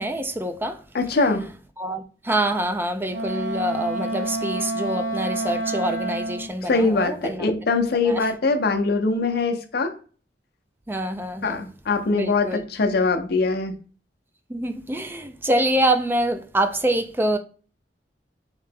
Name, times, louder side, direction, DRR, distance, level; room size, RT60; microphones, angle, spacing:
voice 1, 0.0-0.8 1.8-7.5 8.1-8.2 10.9-11.6 12.1-12.6 14.5-17.4, right 1 dB, 10° right, 0.4 m, -25 dB
voice 2, 0.9-1.5 6.6-9.9 11.4-13.8, left 3 dB, 60° left, 0.6 m, -22 dB
Wind instrument woodwind instrument, 3.1-6.6, right 1 dB, 85° right, 1.3 m, -28 dB
3.2 x 2.8 x 3.3 m
head